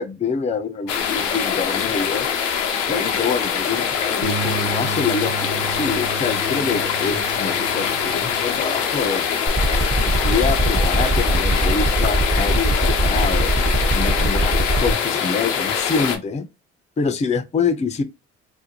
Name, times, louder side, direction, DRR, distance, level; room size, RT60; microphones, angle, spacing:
voice 1, 0.0-2.3 2.9-9.3 10.0-13.5 13.9-16.5 17.0-18.0, left 5 dB, 20° left, 0.4 m, -26 dB
sound 1, 0.9-16.2, left 7 dB, 90° left, 0.5 m, -23 dB
Bass guitar, 4.2-10.5, right 5 dB, 75° right, 0.8 m, -34 dB
sound 2, 9.5-14.9, right 2 dB, 20° right, 0.6 m, -21 dB
2.5 x 2.1 x 2.7 m
hypercardioid pair, 50°, 35 cm